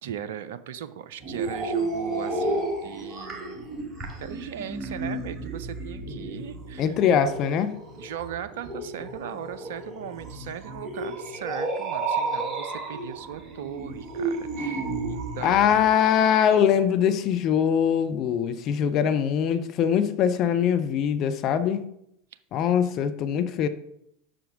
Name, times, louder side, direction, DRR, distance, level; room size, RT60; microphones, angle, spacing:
voice 1, 0.0-3.7 4.0-6.9 8.0-15.8 22.8-22.9 23.3-23.4, right 9 dB, 65° right, 12 dB, 0.5 m, -38 dB
sound 1, 1.2-15.8, right 3 dB, 25° right, 1.5 m, -32 dB
voice 2, 6.8-7.8 15.4-21.8 22.5-23.7, left 8 dB, 45° left, 11 dB, 0.5 m, -22 dB
5.9 x 5.1 x 4.9 m, 0.75 s
figure-of-eight pair, 80°, 0 cm